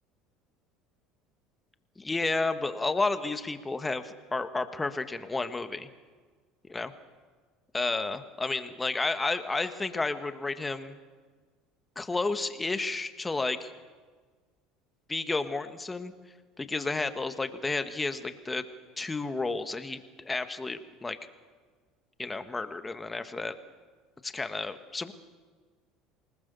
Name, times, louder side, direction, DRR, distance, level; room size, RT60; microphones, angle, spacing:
voice 1, 2.0-5.9 6.7-6.9 7.7-11.0 12.0-13.7 15.1-16.1 16.6-18.7 19.0-21.2 22.2-23.6 24.2-25.1, left 3 dB, 15° left, 9 dB, 1.8 m, -31 dB
27.5 x 20.0 x 7.1 m, 1.4 s
supercardioid pair, 100°, 0 cm